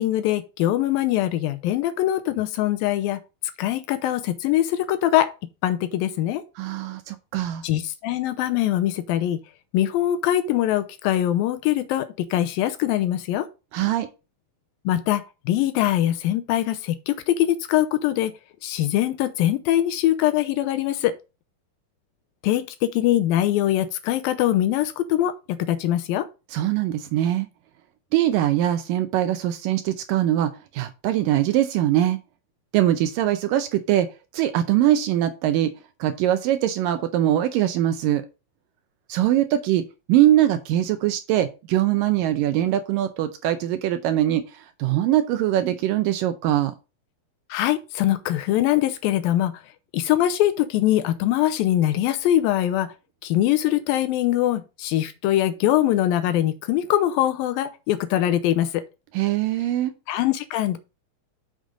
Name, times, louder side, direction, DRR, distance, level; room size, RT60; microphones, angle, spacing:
voice 1, 0.0-3.2 3.6-5.3 5.6-6.4 7.6-9.4 9.7-13.5 14.9-18.4 18.6-21.2 22.4-26.3 47.5-49.5 49.9-52.9 53.2-58.8 60.1-60.8, left 13 dB, 80° left, 2.3 m, -22 dB
voice 2, 6.6-7.6 13.7-14.1 26.5-27.5 28.1-32.2 32.7-35.7 36.0-38.3 39.1-46.7 59.1-59.9, right 12 dB, 80° right, 2.1 m, -22 dB
6.7 x 6.4 x 3.7 m
omnidirectional pair, 4.4 m